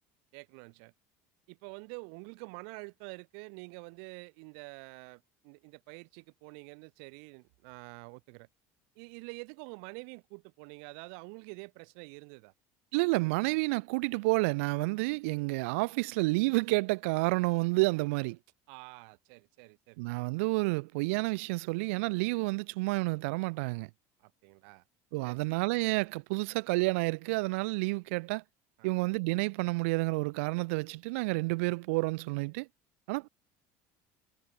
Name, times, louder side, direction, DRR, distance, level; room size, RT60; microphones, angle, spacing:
voice 1, 0.3-0.9 1.5-8.5 8.9-12.5 18.7-20.3 24.2-24.8 25.2-25.4 28.8-28.9, right 40 dB or more, 70° right, 1.6 m, -47 dB
voice 2, 12.9-18.4 20.0-23.9 25.1-28.4 28.8-32.7 33.1-33.3, right 26 dB, 90° right, 1.0 m, -30 dB
cardioid pair, 170°, 7 cm